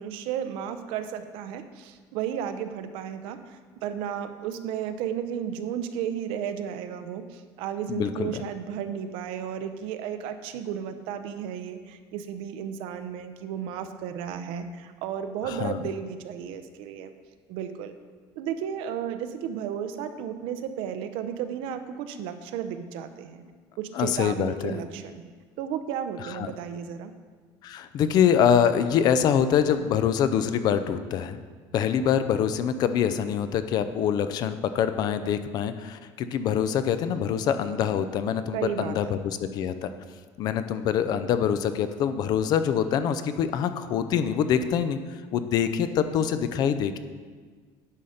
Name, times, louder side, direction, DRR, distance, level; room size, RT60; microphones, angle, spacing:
voice 1, 0.0-17.1 17.5-17.9 18.4-23.4 23.8-25.2 25.6-27.1 38.5-39.2, right 8 dB, 75° right, 9 dB, 0.7 m, -33 dB
voice 2, 7.9-8.4 15.4-15.8 23.9-24.8 26.2-26.5 27.6-31.4 31.7-39.9 40.4-47.0, left 8 dB, 45° left, 11 dB, 0.5 m, -25 dB
9.8 x 5.6 x 5.0 m, 1.5 s
cardioid pair, 160°, 9 cm